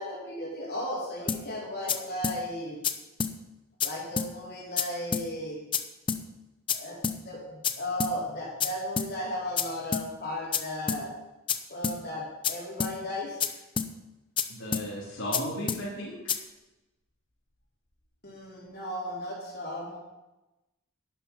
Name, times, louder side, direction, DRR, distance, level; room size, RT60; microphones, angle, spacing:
voice 1, 0.0-2.8 3.8-5.6 6.7-11.1 11.7-13.6 18.2-20.0, left 1 dB, 50° left, -4 dB, 3.8 m, -35 dB
sound 1, 1.3-1.4 1.9-2.0 2.2-2.4 2.8-2.9 3.2-3.3 3.8-3.9 4.2-4.3 4.8-4.9 5.1-5.3 5.7-5.8 6.1-6.2 6.7-6.8 7.0-7.2 7.6-7.7 8.0-8.1 8.6-8.7 9.0-9.1 9.6-9.7 9.9-10.1 10.5-10.6 10.9-11.0 11.5-11.6 11.8-12.0 12.4-12.5 12.8-12.9 13.4-13.5 13.8-13.9 14.4-14.5 14.7-14.9 15.3-15.4 15.7-15.8 16.3-16.4, left 6 dB, 25° left, 0.6 m, -28 dB
voice 2, 14.5-16.4, equal, 70° left, -7 dB, 3.5 m, -35 dB
11.0 x 10.0 x 5.5 m, 1.0 s
head